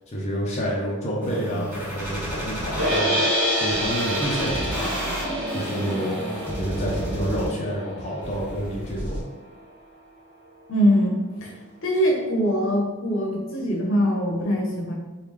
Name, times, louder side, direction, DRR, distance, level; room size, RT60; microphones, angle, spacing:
voice 1, 0.1-3.2 3.6-5.0 5.5-6.2 6.6-9.2, equal, 30° left, -4 dB, 0.5 m, -28 dB
sound 1, 1.2-3.0 3.7-7.7 8.2-9.2, equal, 10° right, 1.5 m, -31 dB
sound 2, 2.8-8.9, equal, 85° right, 1.0 m, -27 dB
voice 2, 10.7-11.5 11.8-14.9, equal, 60° left, -1 dB, 0.7 m, -22 dB
3.1 x 2.3 x 3.6 m, 1.2 s
head